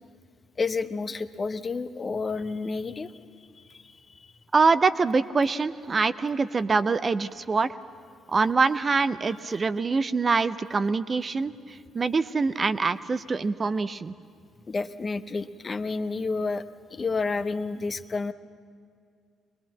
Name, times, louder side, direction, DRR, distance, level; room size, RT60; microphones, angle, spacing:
voice 1, 0.6-3.1 3.7-3.8 4.1-4.2 14.7-16.6 16.9-18.3, left 4 dB, 35° left, 11 dB, 0.9 m, -30 dB
voice 2, 4.5-7.8 8.3-14.1, right 4 dB, 35° right, 13 dB, 0.7 m, -24 dB
23.5 x 21.0 x 7.5 m, 2.2 s
figure-of-eight pair, 45°, 0 cm